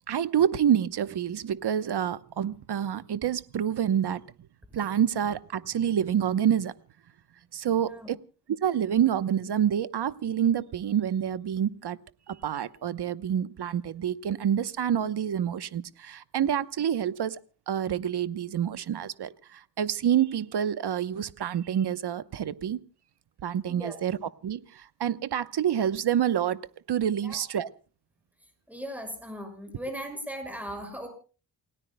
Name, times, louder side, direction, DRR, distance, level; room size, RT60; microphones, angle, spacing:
voice 1, 0.1-4.2 4.7-6.7 7.5-8.2 8.5-12.0 12.3-17.4 17.7-22.8 23.4-24.1 24.4-26.6 26.9-27.7, right 9 dB, 65° right, 14 dB, 1.0 m, -27 dB
voice 2, 7.7-8.1 23.7-24.0 27.1-27.5 28.4-31.1, equal, 5° right, 6 dB, 6.1 m, -39 dB
29.0 x 17.5 x 2.2 m, 0.37 s
wide cardioid pair, 110°, 43 cm